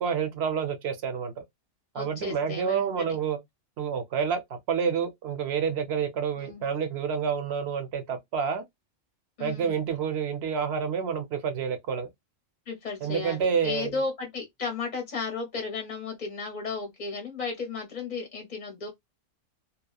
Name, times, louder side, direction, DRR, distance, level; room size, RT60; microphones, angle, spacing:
voice 1, 0.0-1.3 1.9-3.4 3.8-8.6 9.4-12.1 13.0-14.0, right 7 dB, 60° right, 0.8 m, -28 dB
voice 2, 2.0-3.1 6.4-6.6 9.4-9.8 12.7-18.9, left 4 dB, 40° left, 0.7 m, -34 dB
2.9 x 2.1 x 2.3 m
omnidirectional pair, 1.3 m